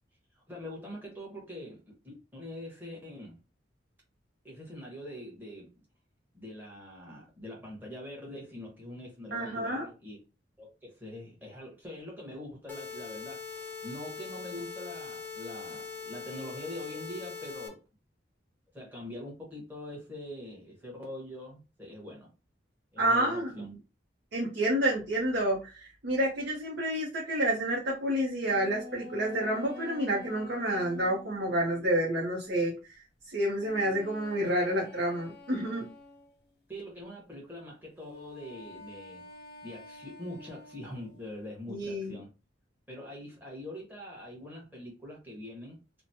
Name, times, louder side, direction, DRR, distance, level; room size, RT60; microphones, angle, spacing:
voice 1, 0.3-3.4 4.4-5.7 6.3-10.2 10.6-17.8 18.7-22.3 22.9-23.7 36.7-39.2 39.6-42.3 42.9-45.8, left 1 dB, 10° right, 1.2 m, -43 dB
voice 2, 9.3-9.9 23.0-23.5 24.3-35.9 41.7-42.1, right 1 dB, 65° right, 0.8 m, -29 dB
sound 1, 12.7-17.7, left 5 dB, 10° left, 0.5 m, -41 dB
sound 2, 28.4-32.0 33.6-36.5 38.1-41.4, left 2 dB, 60° left, 0.5 m, -48 dB
3.0 x 2.1 x 2.7 m
head